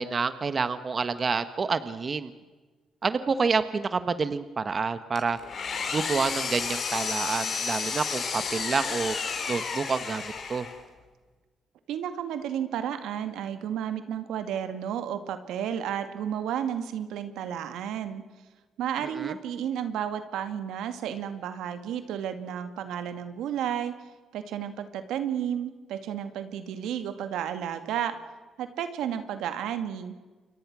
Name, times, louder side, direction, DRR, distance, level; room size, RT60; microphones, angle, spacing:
voice 1, 0.0-2.3 3.0-5.4 5.9-9.1 9.5-10.7 19.1-19.4, right 5 dB, 40° right, 11 dB, 1.3 m, -28 dB
Engine, 5.1-10.9, left 5 dB, 55° left, 4.9 m, -32 dB
voice 2, 11.9-18.2 18.8-23.9 24.3-28.1 28.6-30.1, right 9 dB, 85° right, 9 dB, 2.2 m, -32 dB
28.5 x 23.0 x 6.3 m, 1.3 s
cardioid pair, 90°, 0 cm